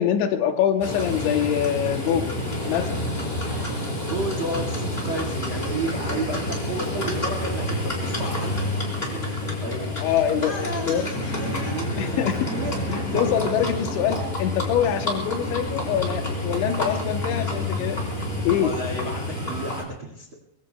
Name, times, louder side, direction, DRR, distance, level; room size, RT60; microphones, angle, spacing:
voice 1, 0.0-2.4 2.7-3.1 9.8-11.1 12.0-12.5 13.1-18.0 18.4-18.8, left 9 dB, 80° left, 6 dB, 3.2 m, -24 dB
Livestock farm animals working animals, 0.8-19.8, left 1 dB, 15° left, 3.6 m, -28 dB
voice 2, 4.1-10.0 10.4-13.2 18.5-20.3, right 2 dB, 45° right, 1 dB, 1.7 m, -33 dB
sound 1, 11.2-17.7, right 4 dB, 90° right, 8.7 m, -45 dB
24.0 x 23.0 x 2.3 m, 0.79 s
omnidirectional pair, 5.4 m